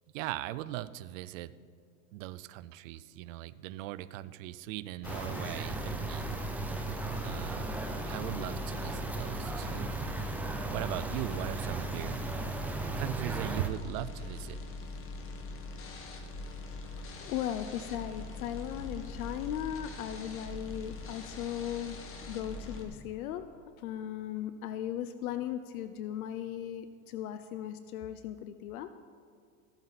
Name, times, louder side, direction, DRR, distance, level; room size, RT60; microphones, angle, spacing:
voice 1, 0.1-1.5 2.1-6.7 7.2-7.8 8.1-10.0 10.7-12.2 13.0-14.6, right 15 dB, 60° right, 16 dB, 0.6 m, -39 dB
sound 1, 5.0-22.8, left 3 dB, 30° left, 1.7 m, -42 dB
sound 2, 5.0-13.7, right 3 dB, 5° right, 0.4 m, -37 dB
voice 2, 17.2-23.5 23.8-28.9, left 10 dB, 75° left, 11 dB, 0.7 m, -37 dB
15.0 x 12.0 x 4.1 m, 2.3 s
supercardioid pair, 130°, 43 cm